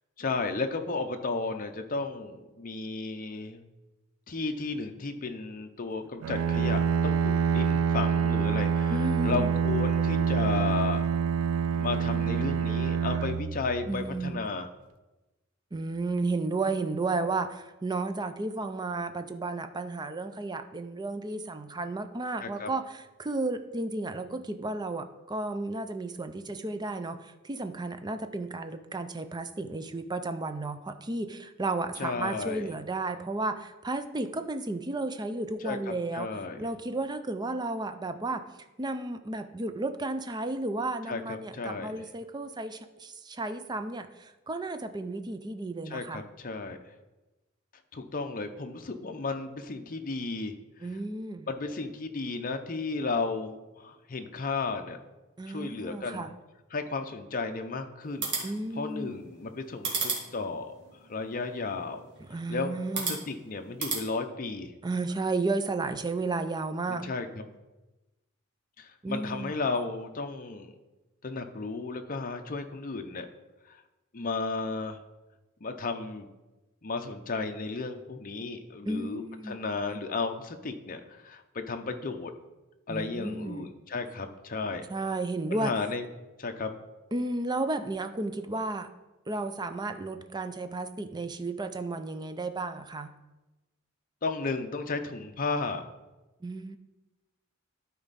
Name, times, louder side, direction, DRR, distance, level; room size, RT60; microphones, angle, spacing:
voice 1, 0.2-3.6 4.3-11.0 11.7-14.7 22.4-22.7 32.0-32.7 35.6-36.6 41.1-41.9 45.9-46.8 47.9-50.5 50.8-50.9 51.5-55.0 55.5-56.3 56.7-60.7 61.1-62.1 62.5-64.7 67.0-67.5 68.8-70.7 71.2-73.3 73.7-73.8 74.1-75.0 75.6-76.3 76.8-82.3 82.9-84.9 85.5-86.1 86.4-86.7 94.2-95.8, left 4 dB, 40° left, 6 dB, 0.7 m, -34 dB
Bowed string instrument, 6.2-14.2, right 7 dB, 90° right, 0.3 m, -26 dB
voice 2, 8.9-9.5 13.9-14.4 15.7-38.4 38.8-46.2 50.8-51.5 55.4-56.3 58.4-59.1 62.3-63.2 64.8-67.1 69.0-69.6 78.9-79.6 82.9-83.7 84.9-85.7 87.1-88.9 89.3-93.1 96.4-96.8, right 2 dB, 20° right, 9 dB, 0.5 m, -33 dB
sound 1, 58.0-64.0, right 4 dB, 60° right, 2.2 m, -37 dB
12.0 x 4.6 x 4.1 m, 1.1 s
head